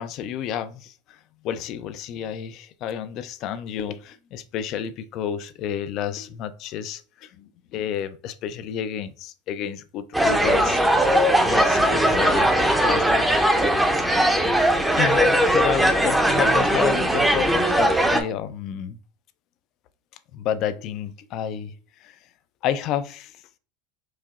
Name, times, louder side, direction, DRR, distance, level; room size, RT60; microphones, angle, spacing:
voice 1, 0.0-10.8 11.4-13.3 13.8-14.0 15.0-19.0 20.3-21.7 22.0-22.2 22.6-23.4, left 9 dB, 50° left, 0.4 m, -30 dB
sound 1, 10.1-18.2, right 1 dB, 5° right, 0.6 m, -19 dB
4.7 x 2.7 x 2.5 m
supercardioid pair, 115°, 0 cm